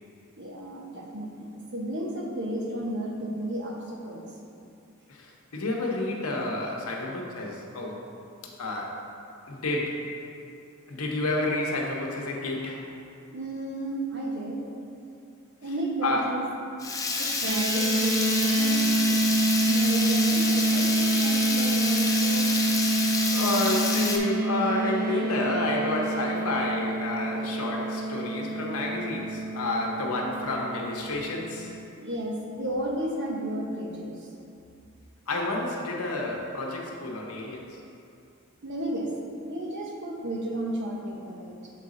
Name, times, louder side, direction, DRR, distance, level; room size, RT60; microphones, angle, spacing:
voice 1, 0.4-1.3 1.7-4.3 13.3-14.6 15.6-16.4 17.2-19.4 19.7-22.5 32.0-34.3 38.6-39.1 39.5-41.5, right 1 dB, 55° right, -1 dB, 0.9 m, -33 dB
voice 2, 5.1-8.0 8.6-9.0 9.5-10.1 10.9-12.9 16.0-16.3 22.1-22.6 23.3-31.7 35.3-37.8, left 2 dB, 90° left, -1 dB, 0.9 m, -30 dB
Water tap faucet / Liquid, 16.8-24.2, left 3 dB, 15° left, 0.4 m, -28 dB
sound 1, 17.5-31.9, right 2 dB, 75° right, 0.4 m, -27 dB
6.7 x 4.1 x 3.8 m, 2.5 s
head